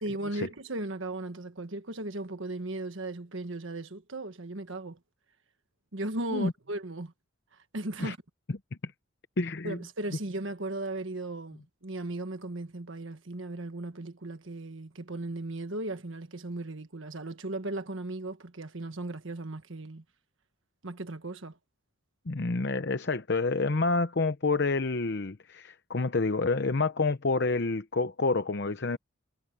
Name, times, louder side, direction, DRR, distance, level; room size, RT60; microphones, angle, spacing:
voice 1, 0.0-5.0 5.9-7.1 7.7-8.2 9.6-20.0 20.8-21.6, right 2 dB, 65° right, 1.4 m, -36 dB
voice 2, 9.4-9.8 22.3-29.0, left 3 dB, 50° left, 0.8 m, -28 dB
head